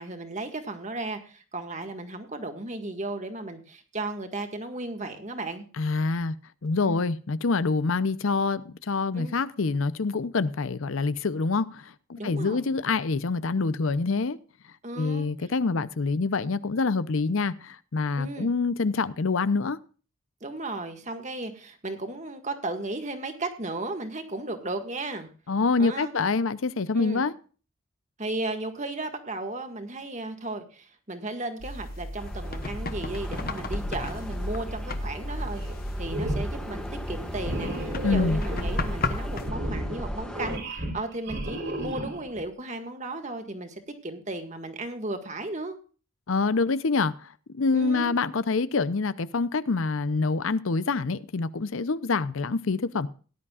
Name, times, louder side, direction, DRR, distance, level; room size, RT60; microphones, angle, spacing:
voice 1, 0.0-5.6 6.8-7.1 9.1-9.3 12.2-12.6 14.8-15.3 18.2-18.5 20.4-25.3 25.8-26.1 26.9-27.2 28.2-35.6 36.0-45.8 47.7-48.1, right 2 dB, 35° right, 1.8 m, -35 dB
voice 2, 5.8-6.3 6.6-14.4 15.0-19.8 25.5-27.3 38.0-38.4 46.3-53.1, left 4 dB, 75° left, 0.6 m, -26 dB
sound 1, 31.6-39.5, left 1 dB, 45° left, 1.1 m, -34 dB
sound 2, 32.2-40.6, equal, 5° left, 1.7 m, -38 dB
sound 3, 35.4-35.8 36.0-36.7 37.4-42.4, right 1 dB, 55° right, 3.3 m, -33 dB
18.0 x 11.0 x 2.4 m
head